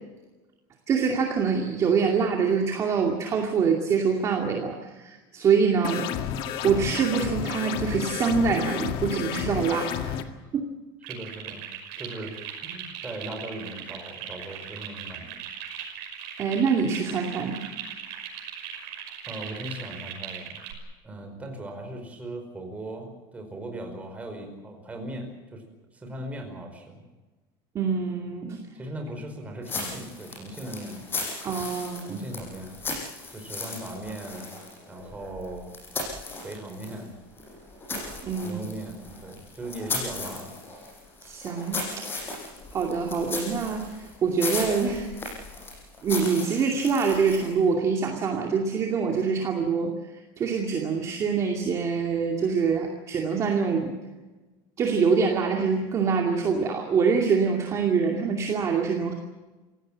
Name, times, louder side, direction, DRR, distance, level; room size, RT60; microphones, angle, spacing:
voice 1, 0.9-6.1 6.6-10.2 10.5-10.7 16.4-17.6 27.7-28.7 31.4-32.2 38.2-38.6 41.2-42.0 42.7-45.3 46.0-50.0 50.4-53.9 54.8-59.1, right 5 dB, 25° right, 2 dB, 2.5 m, -25 dB
sound 1, 5.8-10.2, left 9 dB, 50° left, 1.9 m, -31 dB
sound 2, 11.0-20.7, right 9 dB, 65° right, 5.7 m, -39 dB
voice 2, 11.1-11.7 12.0-12.3 12.6-15.4 19.2-20.6 21.0-25.6 25.9-27.0 28.7-31.1 32.1-32.8 33.3-34.6 34.9-35.7 36.4-37.2 38.4-40.6, right 1 dB, 10° right, 4 dB, 5.0 m, -38 dB
sound 3, 29.6-37.0 37.4-47.6, left 3 dB, 20° left, 7.1 m, -36 dB
27.5 x 17.0 x 7.5 m, 1.2 s
cardioid pair, 165°, 11 cm